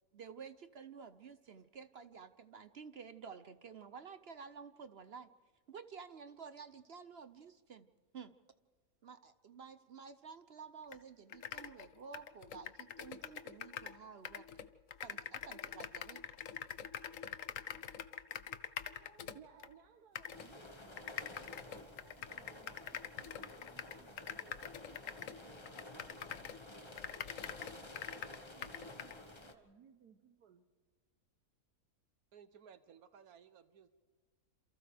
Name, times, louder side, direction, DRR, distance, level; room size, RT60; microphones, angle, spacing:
voice 1, 0.1-5.3 5.7-7.9 8.1-8.4 9.0-14.5 15.0-16.3, right 6 dB, 55° right, 0.7 m, -52 dB
sound 1, 10.9-11.0 11.3-14.0 14.2-19.7 20.2-20.5 21.0-26.6 27.0-29.2, left 9 dB, 60° left, 1.1 m, -45 dB
voice 2, 18.8-27.3 27.9-30.6, right 8 dB, 90° right, 1.5 m, -63 dB
sound 2, 20.3-29.5, left 2 dB, 20° left, 1.2 m, -53 dB
voice 3, 32.3-34.0, right 7 dB, 75° right, 1.3 m, -59 dB
28.0 x 28.0 x 3.4 m
omnidirectional pair, 1.6 m